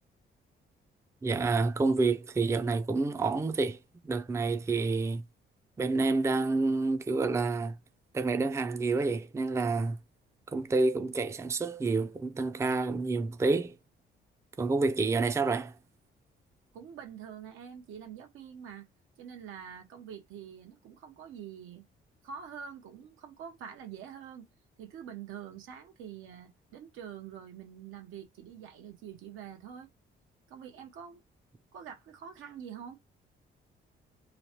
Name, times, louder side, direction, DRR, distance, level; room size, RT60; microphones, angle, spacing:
voice 1, 1.2-3.8 4.0-5.2 5.8-7.8 8.1-10.0 10.5-13.8 14.6-15.7, right 3 dB, 15° right, 0.4 m, -28 dB
voice 2, 16.7-18.9 19.2-21.8 22.2-24.5 24.8-29.9 30.5-31.2 31.7-33.0, right 8 dB, 85° right, 1.0 m, -45 dB
3.1 x 2.1 x 2.8 m
cardioid pair, 90°, 20 cm